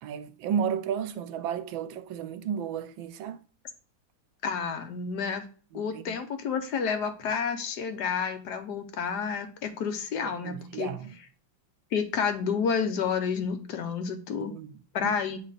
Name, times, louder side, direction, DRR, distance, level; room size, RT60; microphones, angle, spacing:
voice 1, 0.0-3.4 5.7-6.2 10.2-11.2 14.3-15.1, right 8 dB, 80° right, 1.4 m, -33 dB
voice 2, 4.4-5.4 5.7-10.9 11.9-14.5 14.9-15.4, left 6 dB, 60° left, 1.4 m, -30 dB
8.9 x 3.2 x 4.1 m
omnidirectional pair, 2.2 m